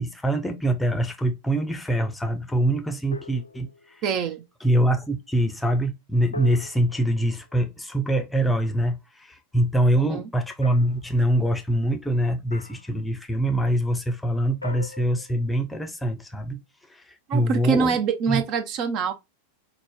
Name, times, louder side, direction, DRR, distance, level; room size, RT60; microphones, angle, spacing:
voice 1, 0.0-4.0 4.6-16.6 16.9-17.0 17.3-18.0 18.3-18.4, right 1 dB, 5° left, 0.6 m, -24 dB
sound 1, 3.1-4.1 6.3-8.1 10.6-11.1 12.5-13.0 14.6-15.9, left 3 dB, 80° left, 0.4 m, -41 dB
voice 2, 4.0-4.5 9.9-10.3 17.3-19.1, right 6 dB, 40° right, 0.5 m, -25 dB
5.0 x 2.1 x 2.2 m
figure-of-eight pair, 90°, 0 cm